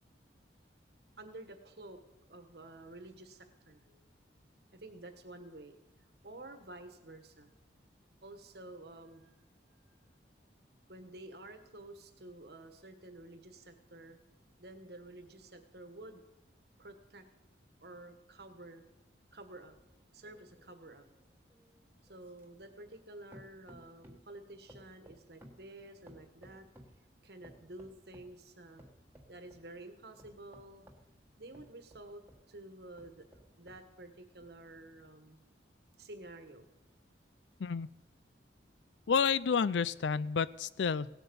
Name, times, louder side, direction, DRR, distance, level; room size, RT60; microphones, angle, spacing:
voice 1, 1.2-2.0 2.3-4.0 4.7-5.8 6.2-7.5 8.2-9.3 9.9-10.0 10.9-14.2 14.6-16.2 16.8-17.2 17.8-18.8 19.3-19.7 20.1-21.1 22.1-26.6 27.2-28.9 29.3-30.9 31.4-33.2 33.6-35.4 36.0-36.7, right 2 dB, 60° right, 7 dB, 1.5 m, -51 dB
sound 1, 19.7-23.1 23.3-24.3 24.7-27.0 27.4-28.4 28.8-29.7 30.2-32.5 32.9-33.9 34.4-34.5, equal, 10° right, 1.4 m, -58 dB
voice 2, 39.1-41.1, left 6 dB, 75° left, 19 dB, 0.4 m, -30 dB
17.0 x 8.1 x 6.9 m, 0.95 s
head